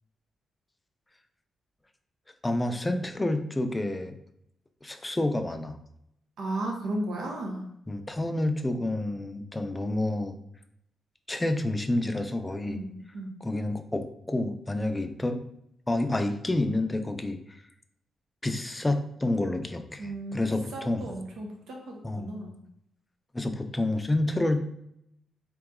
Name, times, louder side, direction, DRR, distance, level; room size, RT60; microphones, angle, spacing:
voice 1, 2.4-4.2 4.8-5.8 7.9-10.4 11.3-12.8 13.4-15.4 15.9-17.6 18.4-21.1 22.0-22.3 23.3-24.7, left 1 dB, 15° left, 7 dB, 0.4 m, -29 dB
voice 2, 6.4-7.7 12.7-13.3 20.0-20.5 20.7-22.6, right 1 dB, 90° right, 0 dB, 0.8 m, -35 dB
3.9 x 2.9 x 3.6 m, 0.76 s
wide cardioid pair, 135°, 0 cm